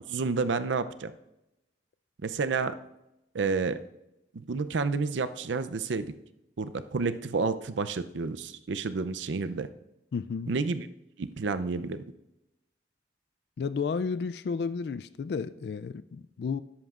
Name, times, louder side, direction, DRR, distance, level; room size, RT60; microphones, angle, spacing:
voice 1, 0.1-1.1 2.2-2.7 3.3-3.8 4.5-6.1 6.6-9.7 10.5-10.9 11.2-12.0, right 4 dB, 85° right, 12 dB, 0.5 m, -30 dB
voice 2, 10.1-10.5 13.6-16.6, left 5 dB, 65° left, 14 dB, 0.3 m, -32 dB
13.0 x 10.5 x 2.4 m, 0.93 s
head